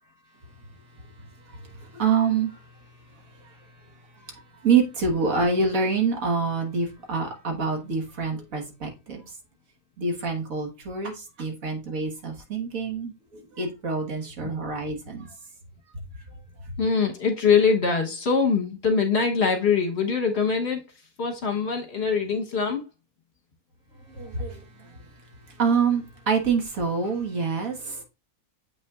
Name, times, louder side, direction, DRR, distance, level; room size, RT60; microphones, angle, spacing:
voice 1, 1.9-2.5 4.6-9.2 10.0-13.1 13.6-15.3 24.1-24.6 25.6-28.0, right 5 dB, 70° right, 1.9 m, -26 dB
voice 2, 16.8-20.8 21.2-22.8, left 5 dB, 50° left, 1.3 m, -23 dB
7.4 x 5.7 x 2.4 m
omnidirectional pair, 1.5 m